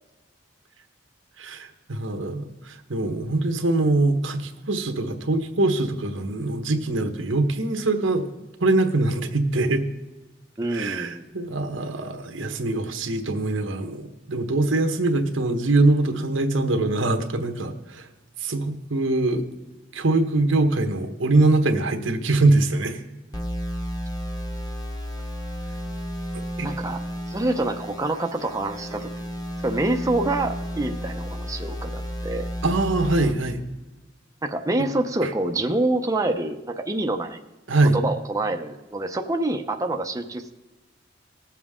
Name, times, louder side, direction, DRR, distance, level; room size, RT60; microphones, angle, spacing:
voice 1, 1.4-8.3 8.6-9.8 10.7-18.1 18.4-19.5 19.9-23.0 26.6-26.7 32.6-33.6 35.2-35.3 37.7-38.0, right 2 dB, 90° right, 5 dB, 1.2 m, -23 dB
voice 2, 10.6-11.3 26.6-27.0 27.3-29.1 29.6-32.5 34.4-37.4 37.8-40.5, right 2 dB, 20° right, 4 dB, 0.6 m, -26 dB
sound 1, 23.3-33.3, equal, 20° left, 1.3 m, -32 dB
19.5 x 7.3 x 3.6 m, 1.1 s
head